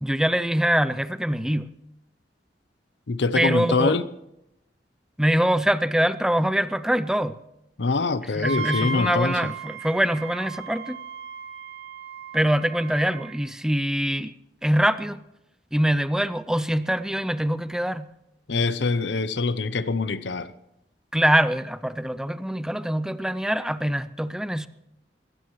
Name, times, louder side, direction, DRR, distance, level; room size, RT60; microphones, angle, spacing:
voice 1, 0.0-1.7 3.3-4.0 5.2-7.4 8.3-11.0 12.3-14.3 14.6-15.2 15.7-18.1 21.1-24.7, equal, 5° right, 0.4 m, -24 dB
voice 2, 3.1-4.1 7.8-9.5 18.5-20.5, left 3 dB, 85° left, 0.7 m, -24 dB
Wind instrument woodwind instrument, 8.4-13.4, right 2 dB, 75° right, 2.6 m, -34 dB
21.0 x 16.0 x 3.1 m
head